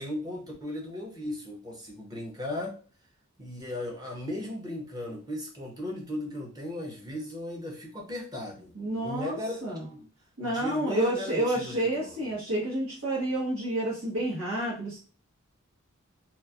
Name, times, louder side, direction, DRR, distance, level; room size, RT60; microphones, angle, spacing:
voice 1, 0.0-2.8 3.4-9.6 9.9-10.1 10.4-12.3, left 1 dB, 20° right, -1 dB, 0.7 m, -36 dB
voice 2, 8.7-9.8 10.4-15.0, right 1 dB, 80° right, -7 dB, 1.1 m, -29 dB
3.0 x 2.4 x 2.3 m, 0.38 s
head